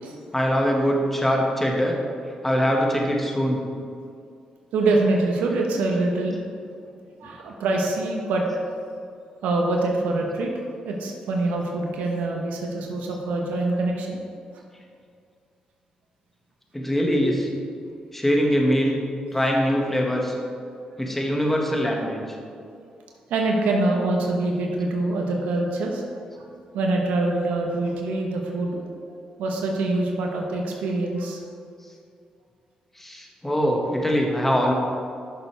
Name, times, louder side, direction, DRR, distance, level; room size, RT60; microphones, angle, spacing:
voice 1, 0.3-2.0 2.4-3.6 16.7-17.5 18.1-19.0 19.3-20.3 21.0-22.2 33.0-34.7, equal, 10° left, 0 dB, 1.7 m, -22 dB
voice 2, 4.7-6.4 7.2-8.6 9.4-10.5 10.8-14.2 23.3-26.4 26.7-28.8 29.1-31.4, right 2 dB, 85° right, 1 dB, 1.0 m, -25 dB
11.0 x 6.6 x 3.4 m, 2.3 s
supercardioid pair, 60°, 3 cm